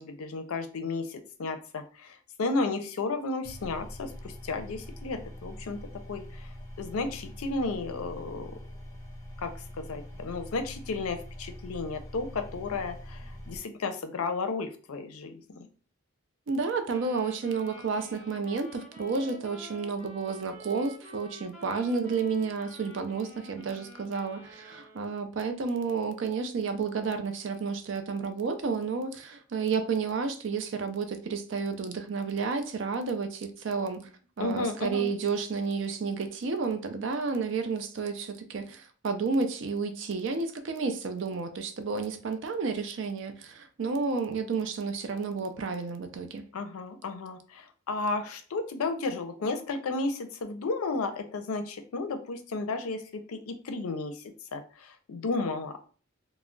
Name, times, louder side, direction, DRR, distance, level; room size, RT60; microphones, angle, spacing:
voice 1, 0.0-6.5 6.8-8.5 9.4-15.7 34.4-35.1 46.5-55.8, left 3 dB, 85° left, 0.5 m, -33 dB
sound 1, 3.4-13.6, equal, 15° left, 0.5 m, -44 dB
voice 2, 16.5-34.1 34.4-46.4, right 4 dB, 60° right, 0.4 m, -31 dB
sound 2, 16.9-25.3, equal, 10° right, 1.1 m, -49 dB
2.2 x 2.0 x 3.6 m
head